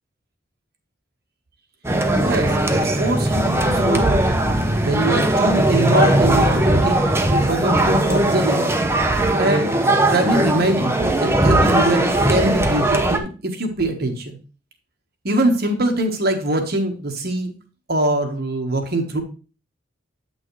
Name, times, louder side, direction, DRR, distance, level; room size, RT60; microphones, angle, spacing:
sound 1, 1.8-13.2, right 1 dB, 15° right, 0.8 m, -18 dB
voice 1, 2.1-4.2 4.8-8.7 9.4-9.8 10.1-14.4 15.2-17.5 17.9-19.2, right 1 dB, 55° right, 4 dB, 1.4 m, -23 dB
8.7 x 6.1 x 3.2 m, 0.34 s
head